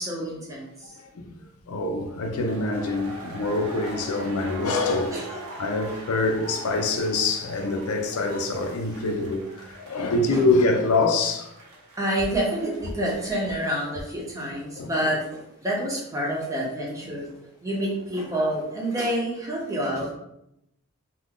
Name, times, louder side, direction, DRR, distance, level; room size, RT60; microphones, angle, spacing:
voice 1, 0.0-0.9 5.1-5.4 10.3-10.4 12.0-17.3 17.6-20.1, right 1 dB, 15° right, 0.6 m, -28 dB
voice 2, 0.9-1.3 1.7-5.3 5.6-11.5 14.8-14.9 18.3-18.4, left 2 dB, 85° left, 0.5 m, -25 dB
sound 1, 2.2-13.9, right 2 dB, 85° right, 0.7 m, -43 dB
2.5 x 2.3 x 3.5 m
head